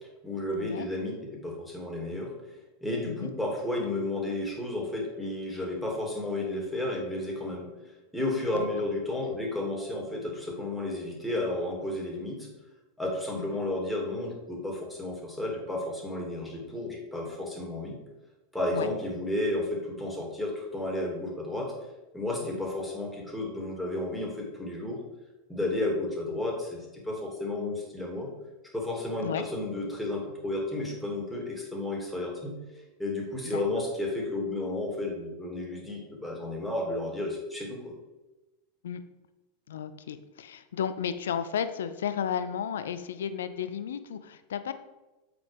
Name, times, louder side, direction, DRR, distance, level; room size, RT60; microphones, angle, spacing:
voice 1, 0.2-2.3 2.8-12.5 13.0-18.0 18.5-21.7 22.1-25.0 25.5-28.3 28.7-32.6 33.0-37.9, left 2 dB, ahead, -3 dB, 2.8 m, -32 dB
voice 2, 39.7-44.7, left 8 dB, 70° left, 12 dB, 0.5 m, -33 dB
7.9 x 5.2 x 5.1 m, 1.1 s
figure-of-eight pair, 85°, 0 cm